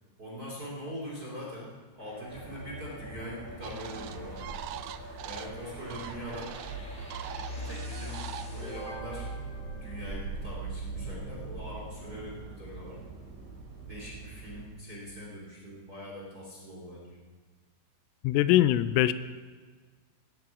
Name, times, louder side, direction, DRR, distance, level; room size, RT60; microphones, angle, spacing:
voice 1, 0.2-1.7 1.9-4.4 5.2-6.5 7.5-9.3 9.7-13.0 13.9-17.2, equal, 25° right, -4 dB, 2.4 m, -42 dB
sound 1, 2.0-10.6, equal, 20° left, 1.7 m, -47 dB
sound 2, 2.3-14.7, right 2 dB, 55° right, 4.8 m, -42 dB
sound 3, 3.6-8.8, right 12 dB, 80° right, 2.9 m, -43 dB
voice 2, 18.2-19.1, left 14 dB, 85° left, 14 dB, 3.2 m, -22 dB
18.0 x 8.9 x 7.2 m, 1.4 s
omnidirectional pair, 5.8 m